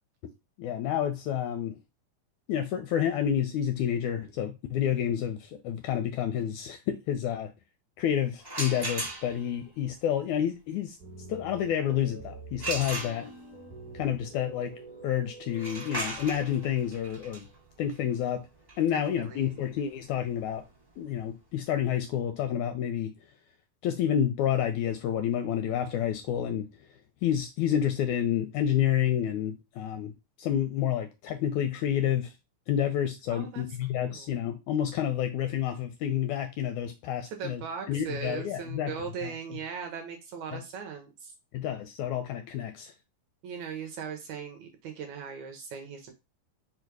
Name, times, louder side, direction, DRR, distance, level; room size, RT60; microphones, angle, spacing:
voice 1, 0.6-1.8 2.5-7.5 8.0-11.0 11.3-13.3 13.9-14.7 15.0-17.5 17.8-18.4 18.8-20.6 21.0-23.1 23.8-26.7 27.2-30.1 30.4-32.3 32.7-37.6 37.9-38.9 39.2-39.6 40.5-40.6 41.5-42.9, left 10 dB, 80° left, 1.7 m, -29 dB
sound 1, 8.4-9.6 12.6-13.6 15.5-21.2, right 2 dB, 30° right, 0.4 m, -38 dB
sound 2, 11.0-18.5, right 2 dB, 45° right, 1.2 m, -47 dB
voice 2, 18.9-19.5 33.3-33.6 34.0-34.3 37.4-41.3 43.4-46.1, right 6 dB, 75° right, 1.7 m, -39 dB
5.0 x 2.3 x 4.6 m
omnidirectional pair, 3.7 m